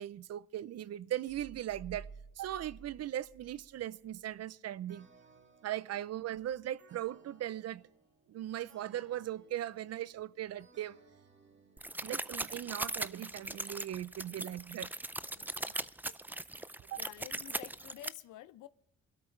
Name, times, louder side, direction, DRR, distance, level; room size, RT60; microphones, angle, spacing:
voice 1, 0.0-2.1 2.4-5.1 5.6-7.8 8.3-11.0 12.0-14.9 16.9-17.0, right 12 dB, 55° right, 0.6 m, -39 dB
sound 1, 1.3-4.2, right 5 dB, 75° right, 7.2 m, -52 dB
sound 2, 4.9-12.5, right 3 dB, 40° right, 1.9 m, -64 dB
sound 3, 11.8-18.1, right 2 dB, 5° right, 0.4 m, -39 dB
voice 2, 15.4-15.9 16.9-18.7, left 14 dB, 80° left, 0.6 m, -50 dB
20.5 x 13.0 x 3.2 m
cardioid pair, 90°, 30 cm